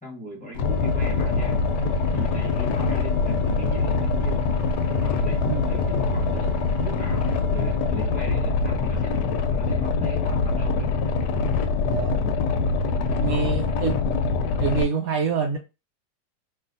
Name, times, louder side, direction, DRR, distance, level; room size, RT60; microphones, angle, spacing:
voice 1, 0.0-1.6 2.1-4.5 5.0-10.9 13.2-13.8, equal, 5° left, -4 dB, 0.8 m, -39 dB
Boat Water vehicle, 0.5-14.8, left 4 dB, 80° left, 1.2 m, -24 dB
sound 1, 0.6-8.8, equal, 25° right, 1.3 m, -38 dB
voice 2, 11.8-12.2 13.1-14.0 14.6-15.6, right 5 dB, 70° right, 2 dB, 0.9 m, -26 dB
3.3 x 2.5 x 2.6 m, 0.27 s
omnidirectional pair, 1.9 m